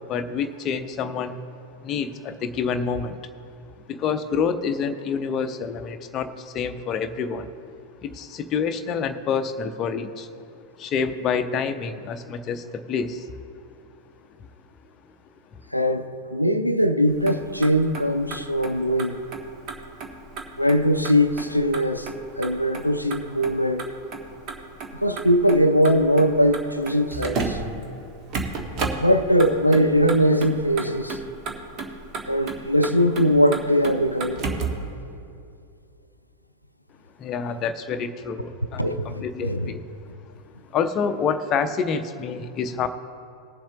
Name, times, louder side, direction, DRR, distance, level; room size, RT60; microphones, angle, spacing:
voice 1, 0.1-1.4 1.8-3.2 3.9-7.5 8.0-10.3 10.8-13.3 37.2-39.8 40.7-42.9, left 6 dB, 30° left, 0.6 m, -27 dB
voice 2, 15.7-19.2 20.6-22.1 22.4-23.8 24.9-27.6 29.0-31.2 32.3-34.5 38.8-39.7, equal, 90° left, 0.5 m, -21 dB
Motor vehicle (road), 17.1-34.9, right 4 dB, 35° right, 1.4 m, -34 dB
20.0 x 7.3 x 3.0 m
figure-of-eight pair, 90°, 0 cm